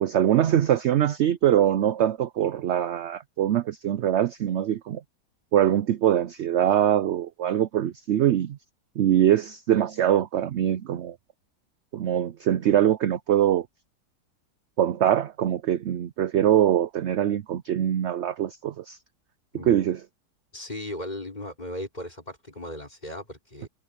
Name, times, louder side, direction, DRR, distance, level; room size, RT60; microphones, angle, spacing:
voice 1, 0.0-5.0 5.5-8.6 9.0-11.1 11.9-13.7 14.8-19.0 19.7-20.0, right 11 dB, 70° right, 0.7 m, -23 dB
voice 2, 20.5-23.7, left 1 dB, 25° left, 5.4 m, -37 dB
omnidirectional pair, 1.7 m